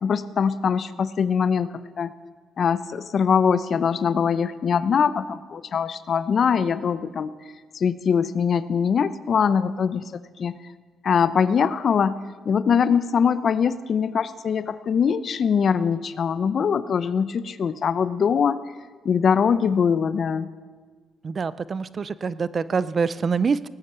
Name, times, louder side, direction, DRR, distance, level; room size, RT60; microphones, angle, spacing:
voice 1, 0.0-2.1 2.6-7.3 7.7-10.0 10.4-10.6 11.0-12.2 12.4-18.6 19.0-20.5, left 6 dB, 55° left, 15 dB, 0.7 m, -22 dB
voice 2, 21.2-23.7, right 5 dB, 40° right, 17 dB, 0.5 m, -25 dB
18.5 x 8.9 x 8.0 m, 1.4 s
cardioid pair, 90°, 0 cm